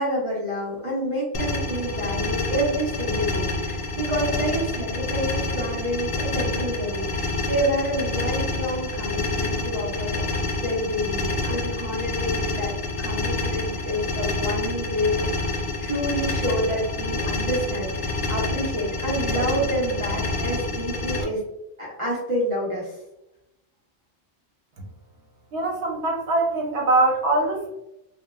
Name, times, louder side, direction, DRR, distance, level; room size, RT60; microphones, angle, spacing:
voice 1, 0.0-21.4 21.8-23.0, equal, 35° right, -7 dB, 0.7 m, -28 dB
sound 1, 1.3-21.2, left 2 dB, 60° left, 0.7 m, -28 dB
voice 2, 25.5-27.7, right 2 dB, 80° right, 0 dB, 0.9 m, -22 dB
2.8 x 2.2 x 2.3 m, 0.88 s
omnidirectional pair, 1.2 m